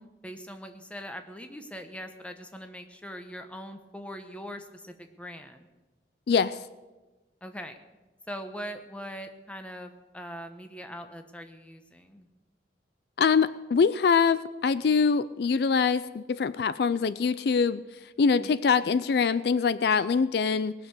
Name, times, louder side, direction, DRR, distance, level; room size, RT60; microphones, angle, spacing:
voice 1, 0.0-5.7 7.4-7.8 8.3-12.3 18.4-18.6, equal, 5° left, 7 dB, 1.0 m, -41 dB
voice 2, 6.3-6.6 13.2-17.8 18.2-20.7, left 5 dB, 60° left, 16 dB, 0.4 m, -24 dB
20.0 x 6.7 x 8.0 m, 1.2 s
head